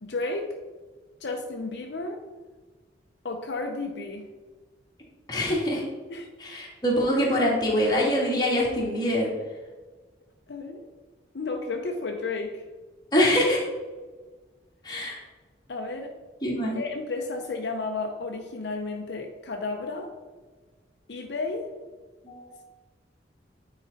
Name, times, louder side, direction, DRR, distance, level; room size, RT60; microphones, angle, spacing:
voice 1, 0.0-0.5 1.2-2.2 3.2-4.3 6.1-6.3 10.5-10.9 11.3-12.6 15.7-16.1 16.7-20.1 21.1-21.7, left 3 dB, 70° left, 3 dB, 0.6 m, -32 dB
voice 2, 5.3-5.8 6.4-9.3 13.1-13.6 14.8-15.2 16.4-16.8 22.2-22.5, equal, 25° left, -4 dB, 1.8 m, -24 dB
9.4 x 4.0 x 4.0 m, 1.3 s
head